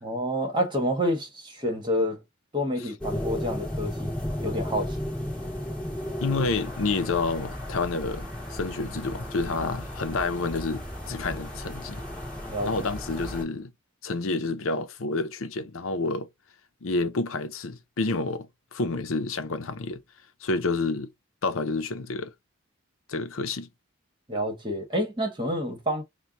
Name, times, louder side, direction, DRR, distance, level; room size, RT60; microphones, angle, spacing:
voice 1, 0.0-2.2 2.5-4.1 4.4-5.0 12.5-12.7 24.3-26.0, equal, 25° right, 1.4 m, -28 dB
sound 1, 3.0-13.4, equal, 5° left, 2.1 m, -34 dB
voice 2, 6.2-12.0 12.6-13.7 14.0-16.3 16.8-20.0 20.4-21.1 21.4-22.3 23.1-23.7, left 3 dB, 75° left, 0.6 m, -29 dB
4.6 x 2.2 x 3.9 m
head